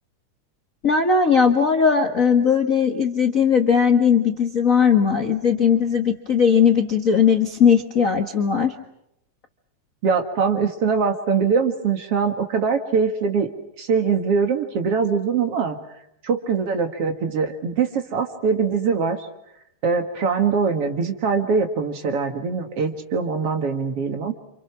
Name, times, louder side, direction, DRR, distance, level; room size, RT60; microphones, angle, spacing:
voice 1, 0.8-8.7, left 6 dB, 45° left, 5 dB, 1.1 m, -18 dB
voice 2, 10.0-13.5 13.8-15.8 16.2-19.2 19.8-24.3, right 5 dB, 50° right, 5 dB, 2.5 m, -22 dB
30.0 x 27.5 x 6.1 m, 0.79 s
omnidirectional pair, 3.7 m